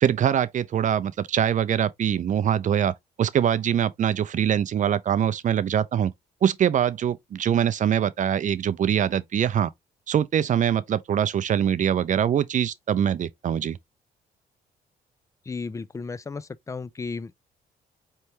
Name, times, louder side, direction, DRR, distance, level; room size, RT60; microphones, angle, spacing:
voice 1, 0.0-6.1 6.4-9.7 10.1-13.8, right 9 dB, 50° right, 0.5 m, -23 dB
voice 2, 15.5-17.4, left 4 dB, 20° left, 0.4 m, -34 dB
4.4 x 3.3 x 2.9 m
cardioid pair, 85°, 17 cm